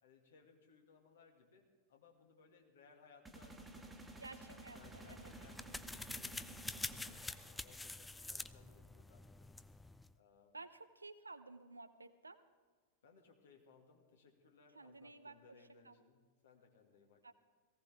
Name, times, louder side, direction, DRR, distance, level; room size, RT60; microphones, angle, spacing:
voice 1, 0.0-6.4 6.7-9.2 10.1-10.5 13.0-17.3, left 5 dB, 60° left, 2 dB, 2.1 m, -65 dB
sound 1, 3.2-8.0, right 2 dB, 5° right, 1.6 m, -54 dB
voice 2, 4.2-5.3 10.5-12.4 14.7-16.0 17.2-17.3, right 3 dB, 80° right, 11 dB, 0.7 m, -54 dB
sound 2, 4.8-10.1, left 2 dB, 10° left, 0.4 m, -47 dB
18.5 x 16.5 x 3.6 m, 1.5 s
figure-of-eight pair, 90°, 0 cm